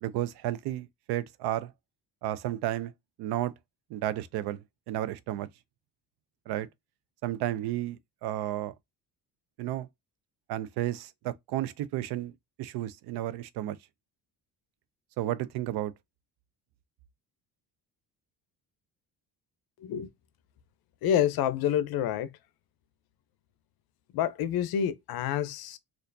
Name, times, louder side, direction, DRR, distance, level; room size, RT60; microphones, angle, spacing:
voice 1, 0.0-1.7 2.2-2.9 3.2-3.5 3.9-5.5 6.5-6.7 7.2-8.7 9.6-9.9 10.5-12.3 12.6-13.8 15.2-15.9, right 13 dB, 80° right, 0.5 m, -32 dB
voice 2, 21.0-22.3 24.1-25.8, left 10 dB, 70° left, 0.6 m, -28 dB
4.3 x 2.5 x 2.6 m
cardioid pair, 160°, 38 cm